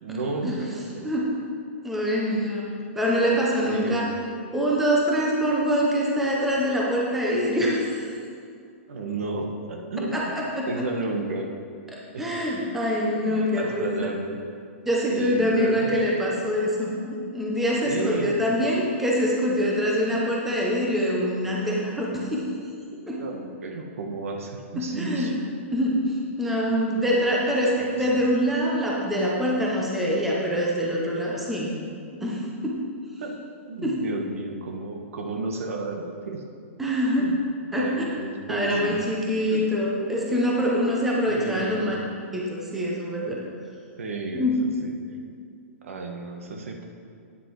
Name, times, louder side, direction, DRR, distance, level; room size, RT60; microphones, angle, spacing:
voice 1, 0.0-1.1 3.7-4.1 8.9-10.3 10.7-11.5 12.1-12.3 13.1-14.4 15.1-16.1 17.8-18.5 23.1-25.3 27.5-28.3 33.2-33.4 33.7-36.4 37.1-37.4 37.8-38.9 39.5-39.6 41.3-41.9 44.0-44.9 45.8-46.9, right 3 dB, 75° right, 3 dB, 1.3 m, -32 dB
voice 2, 1.8-4.1 4.5-8.0 10.1-10.8 11.9-13.9 14.9-22.4 23.1-23.2 24.8-25.3 25.7-25.9 26.4-31.7 32.2-32.7 33.8-33.9 36.8-37.3 37.7-38.1 38.5-42.0 42.3-43.4 44.3-44.6, equal, 5° right, -4 dB, 0.6 m, -24 dB
9.2 x 6.6 x 4.7 m, 2.3 s
hypercardioid pair, 180°, 7 cm